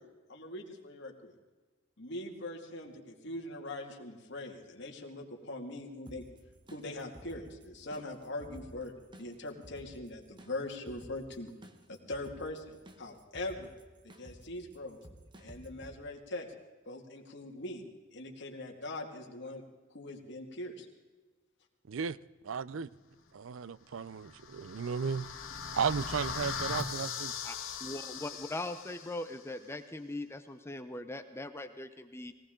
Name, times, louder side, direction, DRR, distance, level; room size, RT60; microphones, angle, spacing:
voice 1, 0.0-1.3 2.0-6.2 6.7-8.9 9.2-11.5 11.9-13.7 14.0-15.0 15.4-16.5 16.9-17.8 18.1-19.6 19.9-20.9, left 2 dB, 60° left, 2.2 m, -42 dB
sound 1, 6.1-15.9, right 1 dB, 25° right, 1.1 m, -54 dB
voice 2, 22.4-22.9 23.3-25.3 25.7-27.3, right 6 dB, 75° right, 0.5 m, -34 dB
sound 2, 24.2-29.3, left 5 dB, 85° left, 1.9 m, -39 dB
voice 3, 27.8-32.3, left 2 dB, 15° left, 0.7 m, -40 dB
19.5 x 18.0 x 3.8 m
head